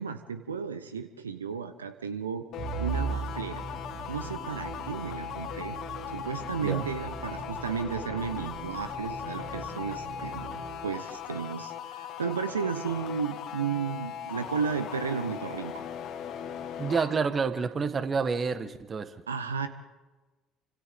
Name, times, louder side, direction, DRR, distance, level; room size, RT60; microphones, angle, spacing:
voice 1, 0.0-2.4 2.8-3.6 4.1-5.8 6.1-10.6 10.8-15.9 19.3-19.7, right 6 dB, 80° right, 11 dB, 0.8 m, -33 dB
sound 1, 2.5-17.2, left 9 dB, 55° left, 1.9 m, -39 dB
Musical instrument, 2.6-11.1, right 4 dB, 65° right, 6.7 m, -39 dB
voice 2, 16.8-19.2, right 5 dB, 30° right, 11 dB, 1.5 m, -29 dB
30.0 x 26.0 x 3.7 m, 1.2 s
figure-of-eight pair, 55°, 0 cm